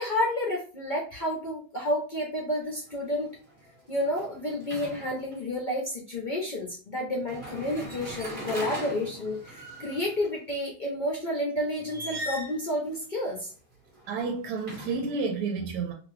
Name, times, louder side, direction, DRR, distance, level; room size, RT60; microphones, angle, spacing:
voice 1, 0.0-3.3 3.9-13.5, left 1 dB, 65° left, 0.4 m, -30 dB
sound 1, 2.6-2.9 3.3-5.4 7.2-10.3 11.8-12.7 13.9-15.2, equal, 20° right, 1.1 m, -40 dB
voice 2, 14.1-15.9, right 4 dB, 90° right, 1.2 m, -30 dB
2.8 x 2.5 x 3.1 m
omnidirectional pair, 1.8 m